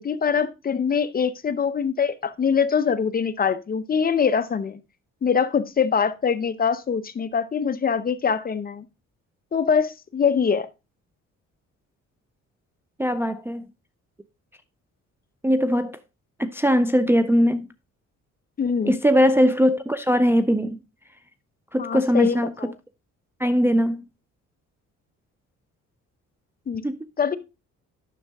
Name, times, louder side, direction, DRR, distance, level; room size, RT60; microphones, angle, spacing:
voice 1, 0.0-4.8 5.2-8.9 9.5-10.7 18.6-19.0 21.8-22.7 26.7-26.8 27.2-27.4, left 6 dB, 30° left, 0.7 m, -23 dB
voice 2, 13.0-13.7 15.4-16.0 16.4-17.7 18.9-20.8 21.7-22.7 23.4-24.0 26.8-27.0, equal, 10° right, 0.4 m, -20 dB
10.0 x 6.3 x 3.4 m
cardioid pair, 115°, 29 cm